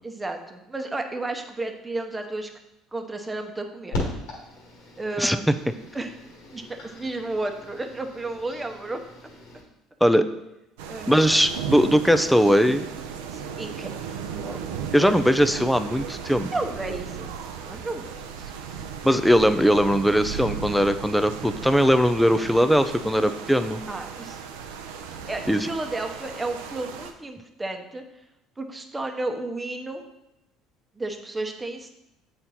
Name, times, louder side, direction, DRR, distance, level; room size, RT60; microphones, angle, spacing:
voice 1, 0.0-2.5 2.9-4.0 5.0-5.4 5.9-6.1 6.5-9.0 10.9-11.1 13.3-13.9 14.4-14.6 15.0-15.1 16.5-17.3 17.7-18.1 18.4-18.5 23.9-24.4 25.3-28.0 28.6-30.0 31.0-31.9, right 2 dB, 15° right, 5 dB, 1.0 m, -32 dB
sound 1, 3.9-9.6, left 2 dB, 85° left, 1.9 m, -38 dB
sound 2, 10.8-27.1, right 7 dB, 85° right, 0.6 m, -36 dB
voice 2, 11.1-12.9 14.9-16.5 19.0-23.8 25.5-25.7, equal, ahead, 10 dB, 0.5 m, -20 dB
7.7 x 4.4 x 4.1 m, 0.88 s
supercardioid pair, 80°, 0 cm